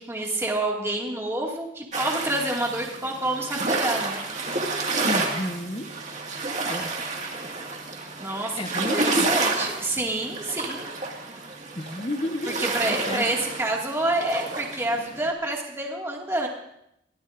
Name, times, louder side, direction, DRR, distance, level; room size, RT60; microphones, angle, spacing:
voice 1, 0.0-4.2 8.2-10.9 12.5-16.5, right 2 dB, 15° right, -1 dB, 2.1 m, -28 dB
sound 1, 1.9-15.3, right 3 dB, 40° right, 2.0 m, -30 dB
voice 2, 5.0-5.9 6.7-6.9 8.6-9.3 11.7-13.2, left 1 dB, 30° left, 7 dB, 1.0 m, -31 dB
23.5 x 16.5 x 2.6 m, 0.79 s
head